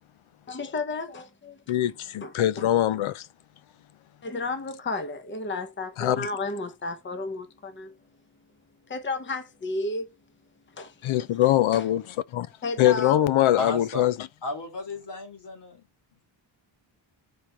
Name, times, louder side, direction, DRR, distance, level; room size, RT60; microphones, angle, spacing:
voice 1, 0.5-1.6 2.2-2.3 4.2-8.0 8.9-10.1 10.7-11.1 11.7-11.9 12.6-13.2, left 3 dB, 25° left, 0.9 m, -32 dB
voice 2, 1.7-3.2 6.0-6.3 11.0-12.0 12.3-12.5 12.8-14.3, left 13 dB, 80° left, 0.7 m, -23 dB
voice 3, 13.6-14.1 14.4-15.8, left 2 dB, 60° left, 2.3 m, -34 dB
4.9 x 4.4 x 5.9 m
wide cardioid pair, 170°, 47 cm